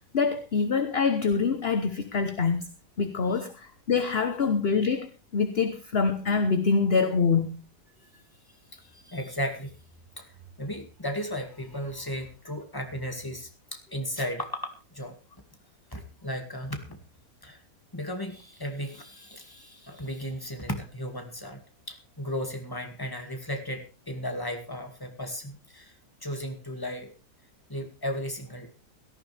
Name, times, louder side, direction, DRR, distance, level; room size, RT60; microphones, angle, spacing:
voice 1, 0.1-2.7 3.0-7.6, left 5 dB, 40° left, 9 dB, 1.1 m, -25 dB
voice 2, 8.7-9.7 10.2-10.3 10.6-15.2 15.9-17.0 17.4-17.6 17.9-21.6 21.9-25.9 26.2-27.1 27.7-28.7, equal, 10° left, 5 dB, 2.1 m, -35 dB
17.5 x 14.0 x 3.4 m, 0.32 s
omnidirectional pair, 1.9 m